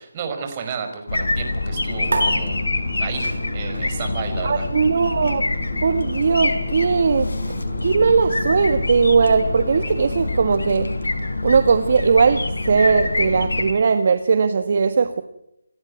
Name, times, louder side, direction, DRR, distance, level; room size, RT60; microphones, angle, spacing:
voice 1, 0.0-2.6 3.0-4.7, right 6 dB, 30° right, 6 dB, 5.0 m, -32 dB
sound 1, 1.1-13.7, left 2 dB, 70° left, 5.2 m, -25 dB
sound 2, 1.7-10.4, right 1 dB, ahead, 2.6 m, -40 dB
sound 3, 2.1-8.9, right 2 dB, 65° right, 4.9 m, -34 dB
voice 2, 4.4-5.4 5.8-7.5 7.8-10.9 11.4-15.2, right 5 dB, 45° right, 10 dB, 1.4 m, -19 dB
28.5 x 13.5 x 9.3 m, 0.82 s
figure-of-eight pair, 155°, 0 cm